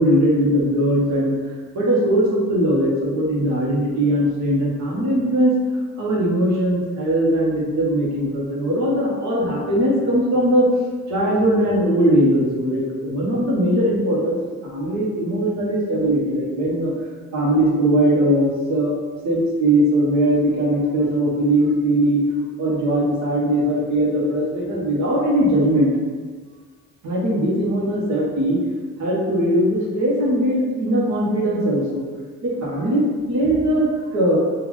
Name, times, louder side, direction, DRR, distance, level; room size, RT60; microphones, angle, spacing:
voice 1, 0.0-1.3 1.7-5.6 6.0-10.7 11.1-14.4 14.6-16.9 17.3-18.9 19.2-22.2 22.6-25.9 27.0-28.6 29.0-32.0 32.4-34.4, right 1 dB, 65° right, -5 dB, 1.1 m, -20 dB
3.5 x 2.5 x 3.3 m, 1.5 s
cardioid pair, 90°, 30 cm